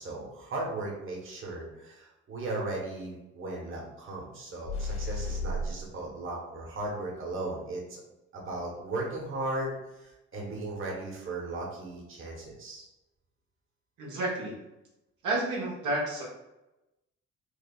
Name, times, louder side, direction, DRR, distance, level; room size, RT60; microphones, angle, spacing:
voice 1, 0.0-8.0 8.3-12.9, right 2 dB, 45° right, -3 dB, 1.1 m, -36 dB
sound 1, 4.6-5.9, left 1 dB, 80° left, 1.5 m, -33 dB
voice 2, 14.0-14.6 15.2-16.2, right 2 dB, 80° right, -4 dB, 1.1 m, -30 dB
4.7 x 2.4 x 2.3 m, 0.96 s
cardioid pair, 90°, 30 cm